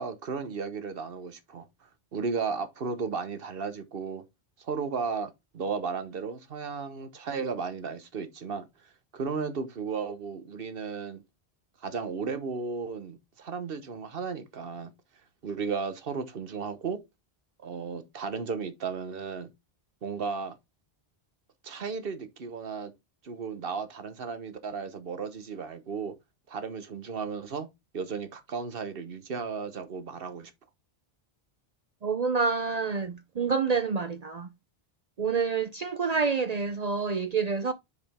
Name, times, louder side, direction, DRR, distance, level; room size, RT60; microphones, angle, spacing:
voice 1, 0.0-1.7 2.1-4.2 4.6-8.7 9.1-11.2 11.8-14.9 15.4-17.0 17.6-19.5 20.0-20.5 21.6-22.9 23.2-26.1 26.5-27.7 27.9-30.5, right 5 dB, 65° right, 1.2 m, -34 dB
voice 2, 32.0-34.5 35.2-37.7, right 5 dB, 50° right, 0.6 m, -28 dB
6.4 x 5.0 x 3.5 m
omnidirectional pair, 1.0 m